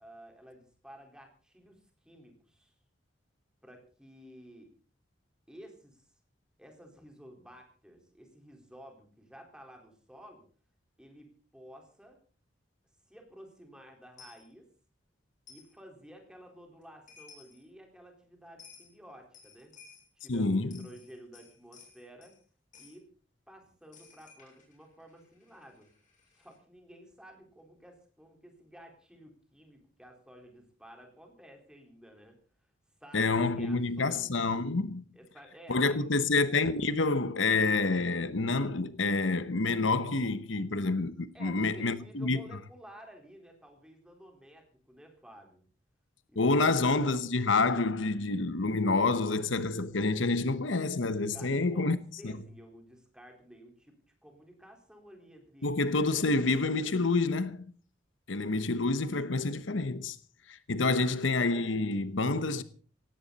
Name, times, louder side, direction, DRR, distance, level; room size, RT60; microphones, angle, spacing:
voice 1, 0.0-2.7 3.6-4.7 5.5-6.1 6.6-10.4 11.0-12.2 13.1-14.7 15.5-19.7 20.2-22.3 22.8-23.1 23.5-25.9 26.3-32.4 33.0-33.3 33.6-34.3 35.1-36.0 41.3-45.6 46.3-46.8 51.3-53.9 54.2-55.8, equal, 5° right, 4.4 m, -53 dB
Coin (dropping), 14.2-14.4 15.5-15.7 16.8-16.9 17.1-17.6 18.6-18.9 19.3-20.1 20.6-22.4 22.7-23.0 23.9-26.6, left 6 dB, 40° left, 7.6 m, -56 dB
voice 2, 20.3-20.7 33.1-35.0 35.7-42.4 46.4-52.0 52.2-52.3 55.6-57.6 58.3-60.2 60.5-62.6, left 3 dB, 80° left, 1.0 m, -28 dB
17.5 x 16.5 x 4.2 m
head